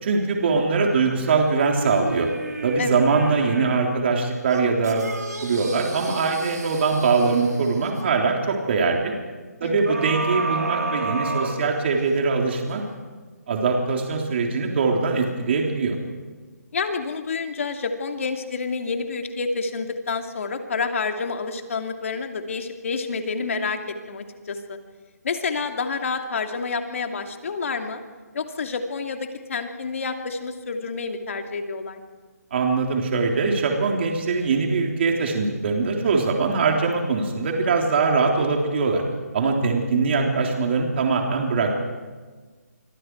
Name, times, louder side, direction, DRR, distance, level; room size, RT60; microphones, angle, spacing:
voice 1, 0.0-2.3 2.6-5.0 5.4-9.1 9.6-12.8 13.5-16.0 32.5-39.0 39.3-41.8, right 4 dB, 40° right, 1 dB, 3.4 m, -22 dB
sound 1, 0.8-3.9 4.5-8.1 9.9-12.2 12.7-12.8, right 3 dB, 90° right, 4.3 m, -32 dB
voice 2, 16.7-24.8 25.2-28.0 28.3-32.0, left 4 dB, 55° left, 5 dB, 2.7 m, -29 dB
27.0 x 25.5 x 4.7 m, 1.4 s
hypercardioid pair, 160°, 9 cm